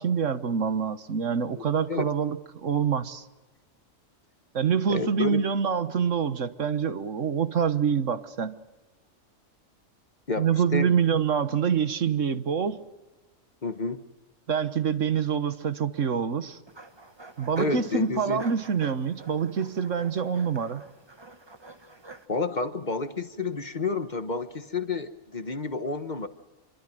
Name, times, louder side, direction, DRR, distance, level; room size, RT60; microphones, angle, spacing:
voice 1, 0.0-3.2 4.5-8.6 10.4-12.8 14.5-16.6 17.4-20.8, right 7 dB, 70° right, 1.6 m, -26 dB
voice 2, 1.6-2.1 4.9-5.5 10.3-11.0 12.3-12.4 13.6-14.0 17.6-18.4 22.3-26.3, left 3 dB, 35° left, 1.3 m, -30 dB
sound 1, 16.7-22.3, right 2 dB, 20° right, 1.4 m, -47 dB
26.5 x 24.0 x 7.8 m
omnidirectional pair, 1.3 m